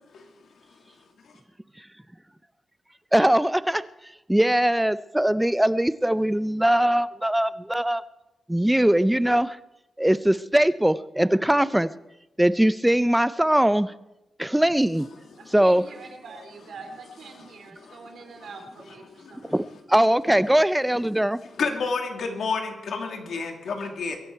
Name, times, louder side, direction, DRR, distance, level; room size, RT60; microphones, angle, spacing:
voice 1, 3.1-3.8 4.3-8.0 8.5-9.6 10.0-11.9 12.4-13.9 14.4-15.1 15.5-15.8 19.4-21.4, right 1 dB, 5° right, 16 dB, 0.4 m, -21 dB
voice 2, 15.4-19.6, right 4 dB, 70° right, 4 dB, 3.0 m, -44 dB
voice 3, 17.3-19.5 21.6-24.2, left 4 dB, 65° left, 4 dB, 2.2 m, -32 dB
23.0 x 11.5 x 4.5 m, 0.93 s
wide cardioid pair, 165°, 0 cm